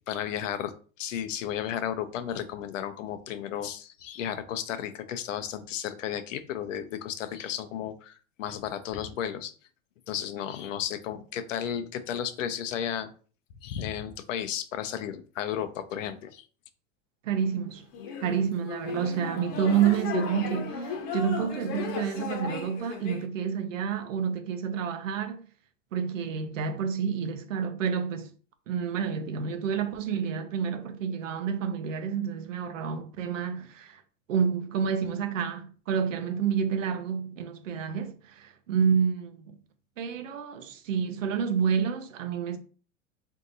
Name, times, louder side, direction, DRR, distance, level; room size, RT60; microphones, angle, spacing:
voice 1, 0.1-9.5 10.1-13.1 13.6-16.5, left 9 dB, 75° left, 0.7 m, -33 dB
voice 2, 17.2-17.9 18.2-25.4 25.9-28.3 28.7-34.0 34.3-39.6 40.0-42.6, right 7 dB, 80° right, 0.8 m, -29 dB
sound 1, 17.9-23.2, left 6 dB, 55° left, 1.0 m, -35 dB
3.6 x 2.8 x 3.9 m
hypercardioid pair, 100°, 38 cm